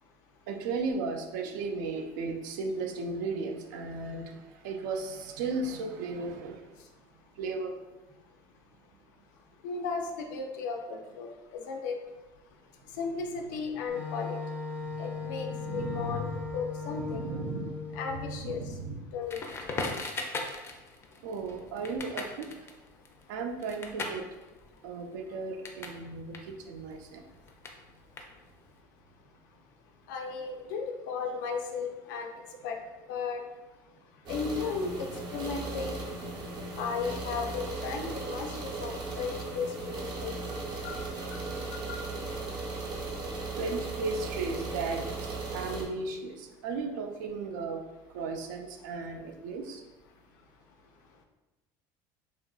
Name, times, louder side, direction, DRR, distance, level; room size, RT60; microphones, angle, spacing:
voice 1, 0.5-6.7 7.4-7.7 14.8-14.9 15.2-16.3 16.8-19.0 21.2-22.5 23.3-24.3 24.8-27.2 40.5-40.6 40.9-41.0 41.4-41.6 41.9-42.4 43.1-43.2 43.5-47.8 48.1-49.8, right 3 dB, 90° right, 4 dB, 0.4 m, -36 dB
voice 2, 9.6-12.0 13.0-14.4 15.0-16.3 16.5-17.2 17.9-18.7 19.1-19.4 30.1-32.3 32.6-32.8 33.1-33.4 34.3-36.1 36.8-40.4 40.8-41.0 41.6-42.0, left 5 dB, 90° left, 3 dB, 0.4 m, -35 dB
Wind instrument woodwind instrument, 13.9-18.6, left 4 dB, 15° right, 0.6 m, -38 dB
Crackle, 19.3-26.0 26.3-28.7, left 3 dB, 25° left, 0.4 m, -39 dB
sound 1, 34.3-45.8, right 3 dB, 50° right, 0.7 m, -37 dB
2.8 x 2.4 x 2.3 m, 1.1 s
supercardioid pair, 115°, 10 cm